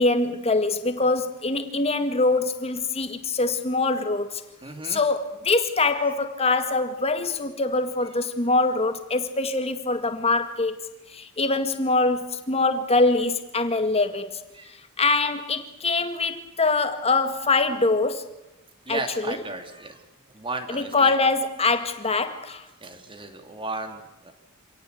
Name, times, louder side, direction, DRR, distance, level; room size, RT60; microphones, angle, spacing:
voice 1, 0.0-4.4 4.8-10.8 11.1-14.4 15.0-18.3 18.9-19.4 20.7-22.7, left 3 dB, 30° left, 2.0 m, -24 dB
voice 2, 4.6-5.0 6.0-6.1 14.5-14.7 18.9-20.0 20.3-21.1 22.8-24.3, right 2 dB, 25° right, 2.9 m, -35 dB
26.5 x 17.5 x 8.2 m
head